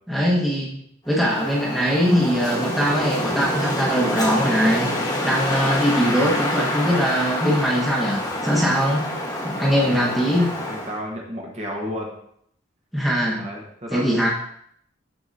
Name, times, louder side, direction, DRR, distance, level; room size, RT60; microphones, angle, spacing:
voice 1, 0.1-0.8 1.1-4.9 5.2-9.1 9.4-10.5 12.9-13.5 13.9-14.3, equal, ahead, -5 dB, 1.2 m, -21 dB
Wind, 1.1-11.0, left 1 dB, 20° left, 1.2 m, -27 dB
voice 2, 10.4-12.1 13.4-14.1, equal, 35° right, -1 dB, 1.3 m, -32 dB
13.0 x 4.7 x 2.7 m, 0.68 s
head